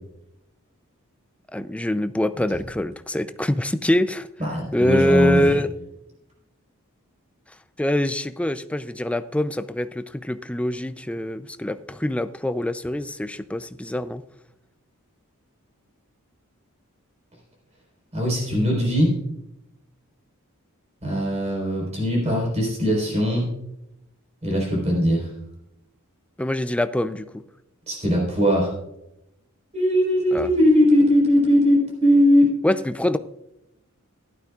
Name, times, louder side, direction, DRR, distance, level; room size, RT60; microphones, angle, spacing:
voice 1, 1.5-4.3 4.7-5.7 7.8-14.2 26.4-27.4 30.3-30.5 32.6-33.2, left 1 dB, 5° left, 11 dB, 0.4 m, -24 dB
voice 2, 4.4-5.6 18.1-19.1 21.0-23.5 24.4-25.3 27.9-28.7 29.7-32.5, equal, 30° right, -3 dB, 4.2 m, -20 dB
16.5 x 12.0 x 2.4 m, 0.85 s
head